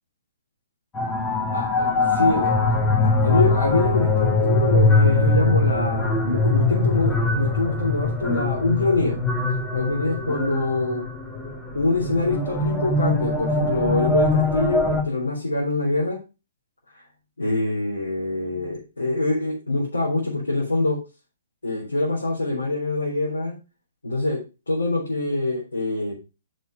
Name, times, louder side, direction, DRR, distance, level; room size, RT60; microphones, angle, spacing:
sound 1, 0.9-15.0, left 2 dB, 15° left, 1.9 m, -22 dB
voice 1, 1.5-2.6 3.0-9.2 9.7-11.0 11.7-16.2 17.4-21.0 21.6-23.5 24.0-26.1, left 2 dB, 80° left, -5 dB, 3.7 m, -24 dB
6.9 x 6.4 x 5.2 m, 0.29 s
figure-of-eight pair, 120°, 0 cm